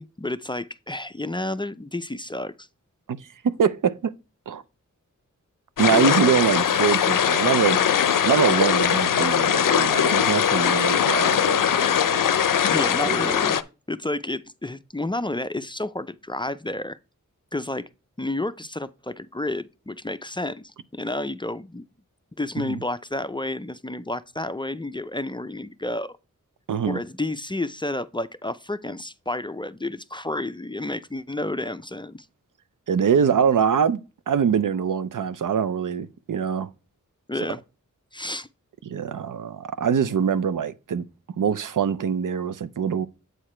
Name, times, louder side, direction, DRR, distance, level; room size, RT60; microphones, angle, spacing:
voice 1, 0.0-2.7 12.4-13.6 13.9-17.0 17.5-17.8 18.2-21.8 22.4-26.2 26.9-32.3 37.3-37.6 38.1-38.5, left 2 dB, 15° left, 0.4 m, -30 dB
voice 2, 3.4-4.1 4.5-4.6 5.8-7.8 8.2-12.3 13.0-13.3 22.6-22.8 26.7-27.0 32.9-34.0 34.3-36.7 38.8-41.1 41.4-43.1, right 7 dB, 75° right, 0.6 m, -24 dB
sound 1, 5.8-13.6, left 8 dB, 80° left, 0.5 m, -21 dB
8.1 x 4.8 x 4.3 m
wide cardioid pair, 55°, 32 cm